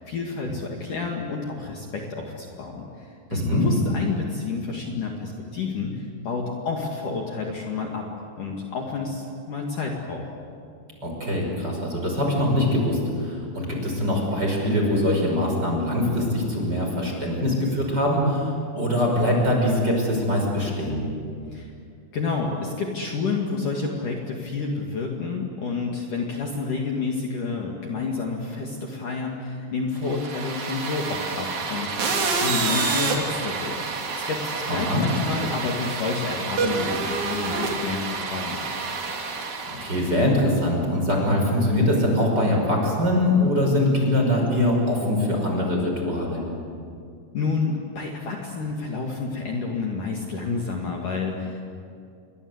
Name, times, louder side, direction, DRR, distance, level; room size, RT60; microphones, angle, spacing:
voice 1, 0.0-8.1 8.4-10.3 21.5-21.7 22.1-38.6 47.3-51.6, left 4 dB, 50° left, 0 dB, 3.3 m, -30 dB
voice 2, 3.3-3.6 11.0-21.0 34.7-35.0 39.3-46.4, left 1 dB, 20° right, 0 dB, 6.0 m, -23 dB
sound 1, 30.0-40.2, right 4 dB, 45° right, 3.7 m, -28 dB
29.0 x 24.0 x 8.1 m, 2.4 s
omnidirectional pair, 5.2 m